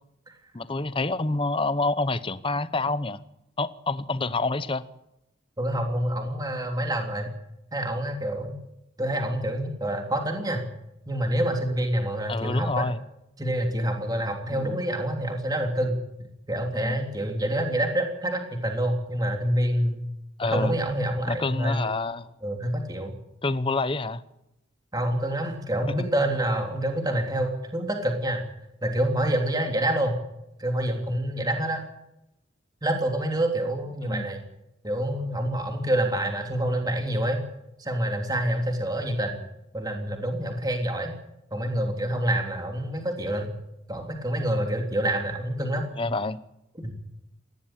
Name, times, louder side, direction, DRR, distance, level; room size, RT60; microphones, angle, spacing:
voice 1, 0.5-3.2 3.6-4.8 12.3-13.0 14.5-14.8 16.8-17.0 20.4-20.7 21.3-22.3 23.4-24.2 34.1-34.3 46.0-46.4, left 3 dB, 25° left, 14 dB, 0.9 m, -27 dB
voice 2, 5.6-7.3 7.7-8.6 9.0-10.6 11.1-12.9 13.4-16.0 16.5-20.0 20.4-21.9 22.4-23.1 24.9-28.4 28.8-30.2 30.6-31.8 32.8-34.4 34.8-37.4 37.8-39.4 39.7-41.1 41.5-43.6 43.9-45.9 46.8-46.9, right 1 dB, 20° right, 3 dB, 3.3 m, -27 dB
20.0 x 16.0 x 9.0 m, 0.86 s
head